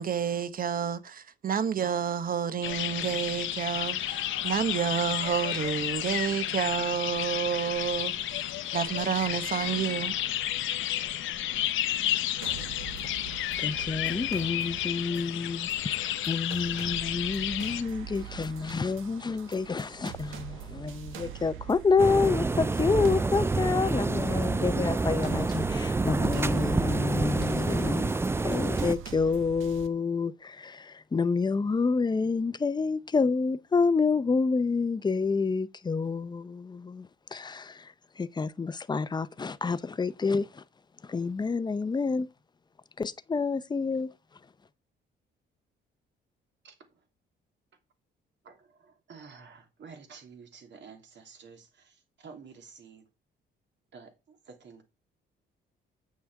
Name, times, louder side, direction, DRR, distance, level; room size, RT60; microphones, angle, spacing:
voice 1, 0.0-8.4 8.7-10.2, right 7 dB, 45° right, 1.0 m, -30 dB
sound 1, 2.6-17.8, left 12 dB, 80° left, 0.8 m, -32 dB
sound 2, 12.4-29.9, right 10 dB, 90° right, 1.3 m, -44 dB
voice 2, 13.6-40.6 41.0-42.3 43.0-44.1, left 4 dB, 20° left, 0.7 m, -28 dB
sound 3, 22.0-29.0, right 3 dB, 10° right, 0.4 m, -28 dB
voice 3, 46.6-47.0 48.4-53.0 53.9-54.8, right 5 dB, 65° right, 2.9 m, -50 dB
8.7 x 6.1 x 4.7 m
cardioid pair, 90°, 20 cm